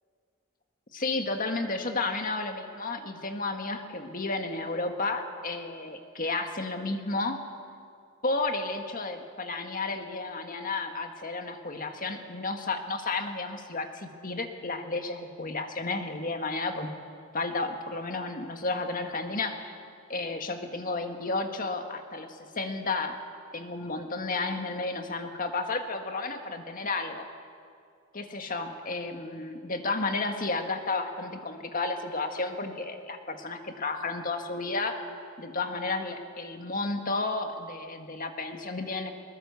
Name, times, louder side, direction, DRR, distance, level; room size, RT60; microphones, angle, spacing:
voice 1, 0.9-7.4 8.2-16.9 17.3-19.7 20.1-23.2 23.5-27.3 28.1-35.0 35.4-39.1, left 3 dB, 45° left, 5 dB, 1.7 m, -32 dB
21.5 x 20.5 x 7.1 m, 2.3 s
head